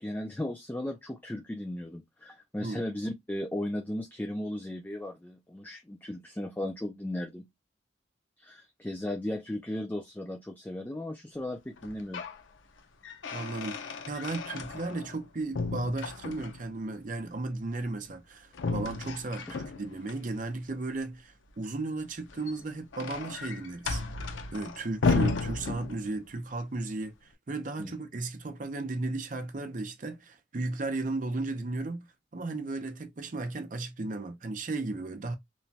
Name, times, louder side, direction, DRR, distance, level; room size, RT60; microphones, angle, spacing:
voice 1, 0.0-7.5 8.4-12.2 27.8-27.9, left 1 dB, 10° left, 0.3 m, -36 dB
sound 1, 11.8-12.4 12.8-15.2 15.5-16.7 18.5-20.2 22.2-26.3, left 4 dB, 80° left, 0.5 m, -33 dB
voice 2, 13.3-24.0 24.5-32.1 32.3-35.4, right 2 dB, 40° right, 0.6 m, -35 dB
3.0 x 2.2 x 2.6 m
head